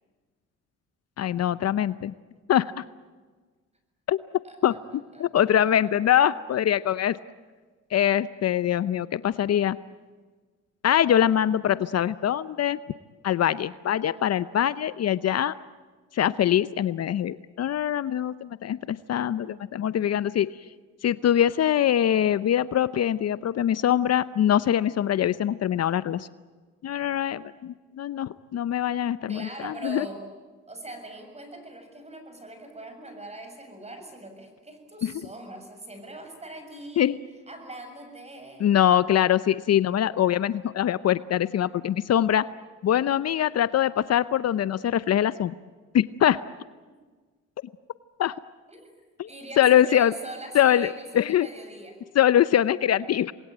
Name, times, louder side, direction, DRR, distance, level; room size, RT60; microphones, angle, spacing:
voice 1, 1.2-2.1 2.5-2.8 4.1-4.2 4.6-4.8 5.2-7.2 7.9-9.8 10.8-12.8 13.2-15.5 16.1-20.5 21.0-26.3 26.8-30.1 35.0-35.1 37.0-37.2 38.6-42.5 42.8-45.6 45.9-46.4 48.2-48.3 49.2-49.3 49.6-50.1 50.5-51.5 52.2-53.3, left 10 dB, 55° left, 16 dB, 0.7 m, -23 dB
voice 2, 4.4-5.5 29.3-30.2 30.7-37.2 37.5-38.8 48.7-48.9 49.3-52.0, right 1 dB, 20° right, 6 dB, 7.1 m, -42 dB
27.5 x 21.0 x 9.2 m, 1.4 s
cardioid pair, 90°, 30 cm